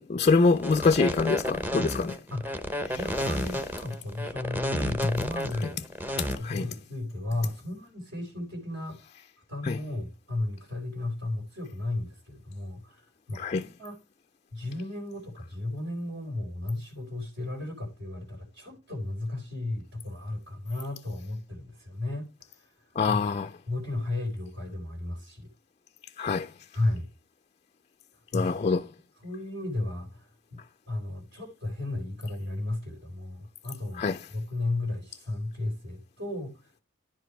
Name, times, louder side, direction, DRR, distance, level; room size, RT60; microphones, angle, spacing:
voice 1, 0.0-2.2 2.9-3.0 6.2-6.7 9.6-9.8 13.3-13.6 23.0-23.5 26.2-26.5 28.3-28.8 34.0-34.2, left 4 dB, 35° left, 0.4 m, -25 dB
sound 1, 0.6-6.3, equal, 10° right, 0.8 m, -31 dB
voice 2, 2.3-2.7 2.9-5.8 6.4-9.1 9.5-14.0 14.5-23.2 23.7-25.5 26.7-27.1 28.3-28.8 29.2-30.6 30.9-34.0 34.3-36.8, left 2 dB, 60° right, 3.4 m, -34 dB
10.5 x 5.1 x 4.5 m
head